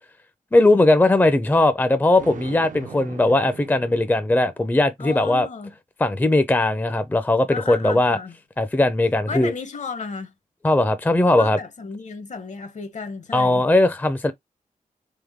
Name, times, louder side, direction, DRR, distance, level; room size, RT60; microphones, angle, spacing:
voice 1, 0.5-5.5 6.0-8.2 8.6-9.5 10.6-11.6 13.3-14.3, left 2 dB, 15° left, 0.5 m, -19 dB
Thunder, 2.2-4.7, right 6 dB, 65° right, 0.6 m, -40 dB
voice 2, 5.0-5.7 7.5-8.3 9.3-10.3 11.4-13.6, left 4 dB, 55° left, 0.9 m, -34 dB
3.7 x 3.6 x 3.5 m
wide cardioid pair, 105°, 14 cm